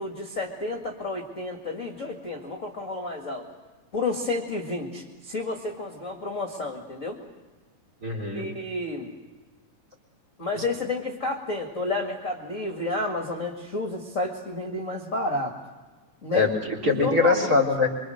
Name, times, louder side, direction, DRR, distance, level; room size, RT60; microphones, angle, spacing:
voice 1, 0.0-3.5 3.9-7.2 8.3-9.1 10.4-15.6 16.2-16.5 16.9-17.6, left 2 dB, 25° left, 2 dB, 2.0 m, -31 dB
voice 2, 8.0-8.5 16.3-17.9, left 3 dB, 25° right, 3 dB, 4.0 m, -22 dB
25.5 x 25.0 x 6.6 m, 1.3 s
omnidirectional pair, 4.0 m